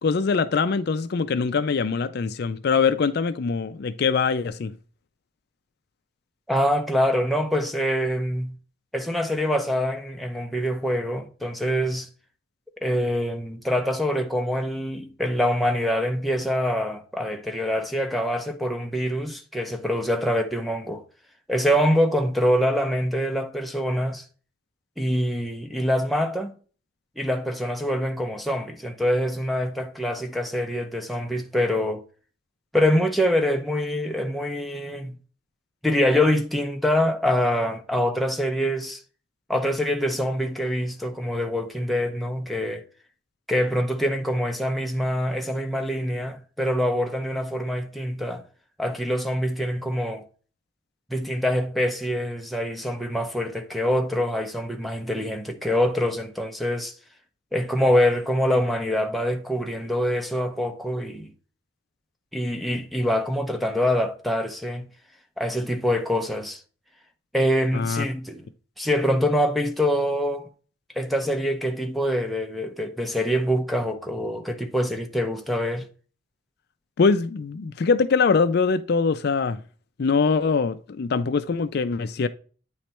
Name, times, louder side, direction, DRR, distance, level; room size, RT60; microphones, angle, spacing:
voice 1, 0.0-4.7 67.7-68.0 77.0-79.6 80.0-82.3, left 5 dB, 55° left, 0.4 m, -23 dB
voice 2, 6.5-8.6 8.9-12.1 12.8-21.0 21.5-24.2 25.0-26.5 27.2-32.0 32.7-35.2 35.8-39.0 39.5-42.8 43.5-48.4 48.8-50.2 51.1-56.9 57.5-61.3 62.3-64.9 65.4-66.6 67.3-68.5 68.8-70.5 70.9-75.9, equal, ahead, 0.6 m, -25 dB
9.1 x 3.2 x 4.3 m
head